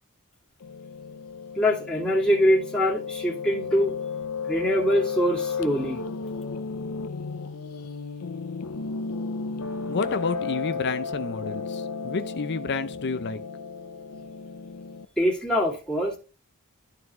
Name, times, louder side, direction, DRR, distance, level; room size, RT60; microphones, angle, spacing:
Piano, 0.6-15.1, left 5 dB, 90° left, 0.7 m, -34 dB
voice 1, 1.5-3.9 4.5-6.0 15.2-16.2, equal, 5° left, 2.5 m, -23 dB
voice 2, 9.9-13.4, left 4 dB, 50° left, 0.6 m, -30 dB
13.0 x 4.7 x 3.1 m
head